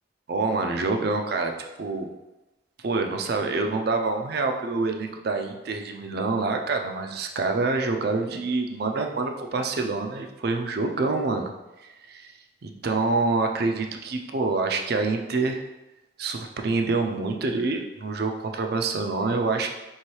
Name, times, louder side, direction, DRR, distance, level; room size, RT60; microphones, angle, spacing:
voice 1, 0.3-1.5 1.8-2.1 2.8-11.5 11.8-12.3 12.6-15.6 16.2-19.7, right 3 dB, 55° right, 4 dB, 0.4 m, -26 dB
4.6 x 3.2 x 3.1 m, 1.1 s
head